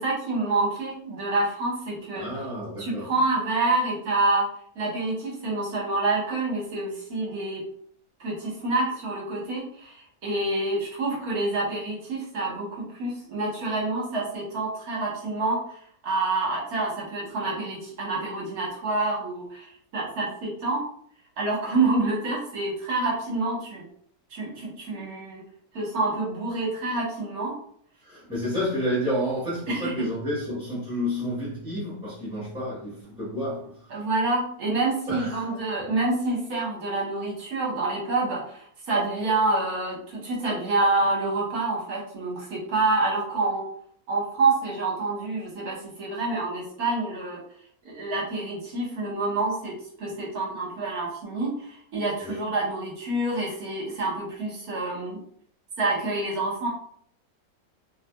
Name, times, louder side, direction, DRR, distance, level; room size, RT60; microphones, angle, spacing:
voice 1, 0.0-2.3 2.8-4.5 4.7-7.6 8.2-20.8 21.4-23.8 24.3-25.4 25.7-27.5 29.7-29.9 33.9-43.7 44.1-47.4 47.8-55.2 55.8-56.7, right 2 dB, 60° right, -4 dB, 1.5 m, -27 dB
voice 2, 2.1-3.1 28.0-34.1 35.1-35.5 52.2-52.5, equal, 5° right, -10 dB, 0.9 m, -30 dB
4.1 x 2.4 x 2.2 m, 0.62 s
omnidirectional pair, 1.8 m